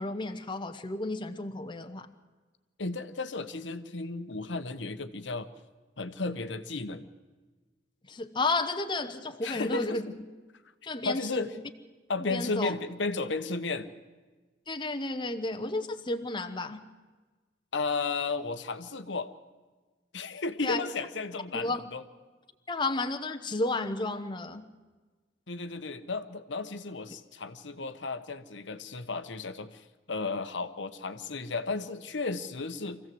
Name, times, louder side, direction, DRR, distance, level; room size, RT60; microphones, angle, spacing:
voice 1, 0.0-2.1 8.1-10.1 10.8-11.7 12.2-12.7 14.7-16.9 20.6-20.8 21.5-21.8 22.7-24.7, left 2 dB, 25° left, 7 dB, 1.0 m, -32 dB
voice 2, 2.8-5.5 6.0-7.1 9.4-10.0 11.0-11.6 12.1-13.9 17.7-19.3 20.1-22.0 25.5-33.0, left 3 dB, 70° left, 9 dB, 1.1 m, -34 dB
24.5 x 16.0 x 7.8 m, 1.3 s
head